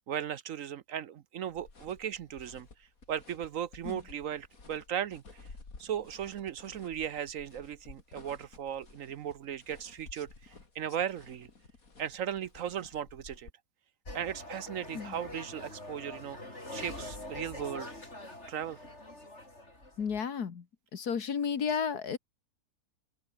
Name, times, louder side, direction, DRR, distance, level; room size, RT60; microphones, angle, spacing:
voice 1, 0.0-2.7 3.1-5.5 5.8-11.5 12.0-13.5 14.1-16.4 16.7-17.9 18.5-18.8, right 9 dB, 65° right, 1.0 m, -37 dB
sound 1, 1.5-13.5, left 3 dB, 60° left, 3.8 m, -54 dB
sound 2, 14.1-20.2, left 1 dB, 45° left, 7.2 m, -44 dB
voice 2, 20.0-20.7 20.9-22.2, left 6 dB, 75° left, 2.2 m, -32 dB
open air
omnidirectional pair, 1.7 m